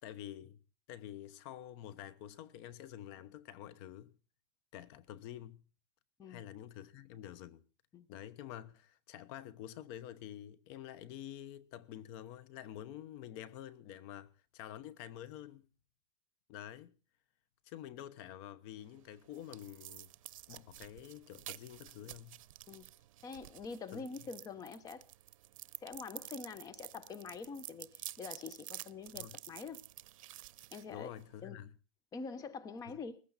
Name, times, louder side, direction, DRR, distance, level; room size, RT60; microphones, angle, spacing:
voice 1, 0.0-0.6 0.9-4.1 4.7-5.6 6.3-7.6 8.1-15.7 16.5-17.0 17.6-20.1 20.5-22.4 23.9-24.1 29.1-29.4 30.9-31.7 32.9-33.0, left 11 dB, 50° left, 1.0 m, -48 dB
sound 1, 18.8-31.5, right 14 dB, 75° right, 0.7 m, -51 dB
voice 2, 23.2-25.1 25.8-29.8 30.7-31.1 31.4-31.6 32.1-33.2, left 5 dB, 20° left, 1.0 m, -45 dB
20.0 x 15.0 x 4.2 m
supercardioid pair, 145°, 17 cm